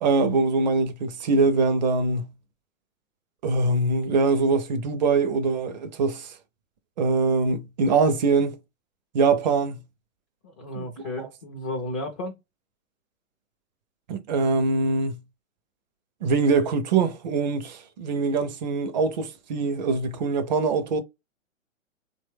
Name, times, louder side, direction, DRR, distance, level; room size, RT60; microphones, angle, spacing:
voice 1, 0.0-2.3 3.4-6.3 7.0-8.6 9.1-9.8 10.8-10.9 14.1-15.2 16.2-21.0, right 4 dB, 35° right, 0.4 m, -23 dB
voice 2, 10.4-12.4, left 1 dB, 25° left, 0.4 m, -33 dB
2.9 x 2.2 x 3.2 m
hypercardioid pair, 125°, 40 cm